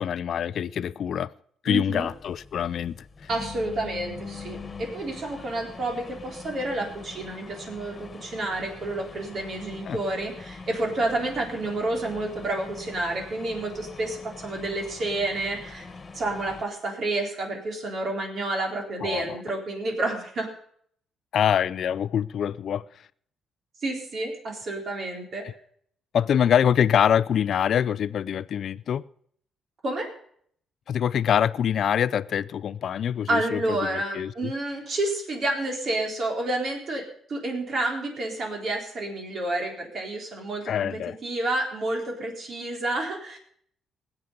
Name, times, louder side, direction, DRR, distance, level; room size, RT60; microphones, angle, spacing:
voice 1, 0.0-1.3 1.6-3.1 9.9-10.0 19.0-19.4 21.3-22.8 26.1-29.0 30.9-34.5 40.7-41.2, left 9 dB, 60° left, 0.4 m, -25 dB
voice 2, 1.7-2.1 3.3-15.9 16.1-20.5 23.8-25.4 29.8-30.1 33.3-40.9 41.2-43.4, right 2 dB, 55° right, 4.1 m, -29 dB
sound 1, 2.0-16.6, left 4 dB, 35° left, 1.7 m, -43 dB
19.5 x 8.0 x 5.3 m
cardioid pair, 90°, 0 cm